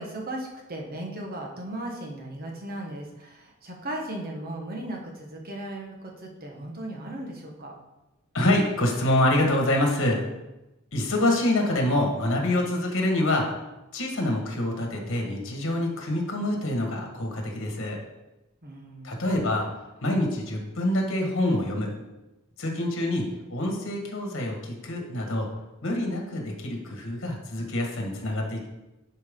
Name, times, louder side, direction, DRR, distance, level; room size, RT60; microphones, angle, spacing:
voice 1, 0.0-7.7 18.6-19.2, right 1 dB, 45° right, 0 dB, 1.4 m, -37 dB
voice 2, 8.3-10.2 10.9-13.5 13.9-18.0 19.0-19.7 20.0-21.9 22.6-25.5 25.8-28.7, left 1 dB, 65° left, 1 dB, 1.6 m, -26 dB
10.5 x 4.5 x 3.8 m, 1.0 s
head